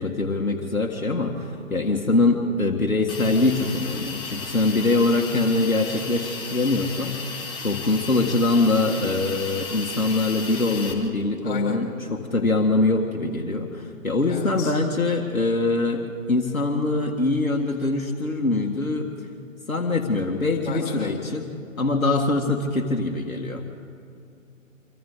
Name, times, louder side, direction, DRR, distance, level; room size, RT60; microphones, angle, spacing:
voice 1, 0.0-16.0 16.3-19.1 19.7-21.5 21.8-23.7, left 2 dB, 80° left, 1 dB, 2.0 m, -23 dB
Hiss, 3.1-10.9, left 4 dB, 10° left, 1.7 m, -35 dB
voice 2, 11.4-11.8 14.3-14.7 20.7-21.1, left 6 dB, 40° left, 0 dB, 5.7 m, -34 dB
26.0 x 25.0 x 4.0 m, 2.5 s
figure-of-eight pair, 135°, 41 cm